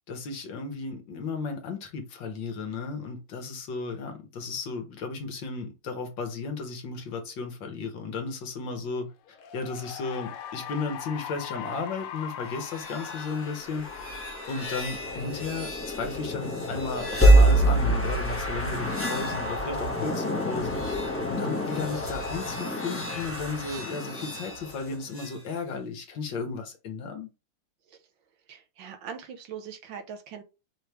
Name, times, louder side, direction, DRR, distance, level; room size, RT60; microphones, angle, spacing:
voice 1, 0.0-9.1 9.5-14.2 14.5-20.8 21.3-27.3, left 4 dB, 65° left, 1.6 m, -34 dB
Cheering / Applause, 9.3-16.0, left 9 dB, 85° left, 1.6 m, -41 dB
sound 1, 12.5-25.4, right 1 dB, 15° left, 0.4 m, -26 dB
voice 2, 28.5-30.4, right 7 dB, 70° right, 1.3 m, -41 dB
4.9 x 3.1 x 3.3 m
omnidirectional pair, 2.4 m